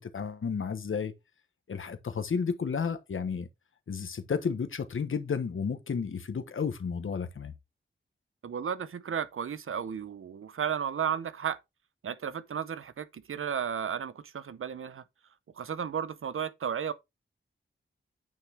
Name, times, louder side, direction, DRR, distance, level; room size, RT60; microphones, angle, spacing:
voice 1, 0.1-1.1 1.7-3.5 3.9-7.5, left 6 dB, 75° left, 1.3 m, -32 dB
voice 2, 8.4-11.6 12.0-15.0 15.6-16.9, right 8 dB, 80° right, 0.8 m, -33 dB
9.1 x 6.1 x 3.5 m
wide cardioid pair, 105°, 21 cm